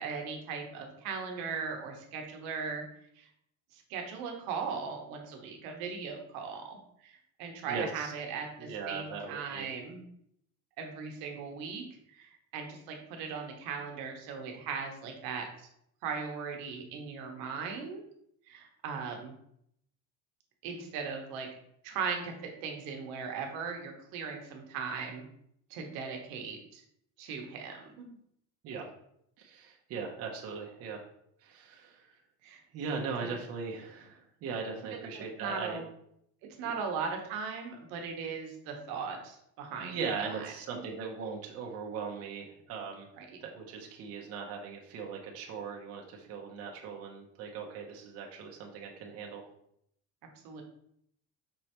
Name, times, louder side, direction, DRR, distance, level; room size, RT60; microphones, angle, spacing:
voice 1, 0.0-2.8 3.2-3.3 3.7-6.8 7.0-10.0 10.8-11.8 12.2-15.5 16.0-18.0 18.5-19.3 20.6-21.5 21.8-22.3 22.6-25.3 25.7-26.8 27.2-28.1 32.4-32.6 33.2-33.3 34.9-35.9 36.6-40.0 40.2-40.8 43.2-43.4 50.4-50.6, right 5 dB, 80° right, 3 dB, 1.0 m, -38 dB
voice 2, 7.7-8.1 8.6-9.7 28.6-28.8 29.4-31.0 31.4-32.1 32.7-35.8 39.8-43.1 43.4-49.4, right 5 dB, 45° right, 0 dB, 0.8 m, -39 dB
5.3 x 3.2 x 2.9 m, 0.72 s
cardioid pair, 155°, 34 cm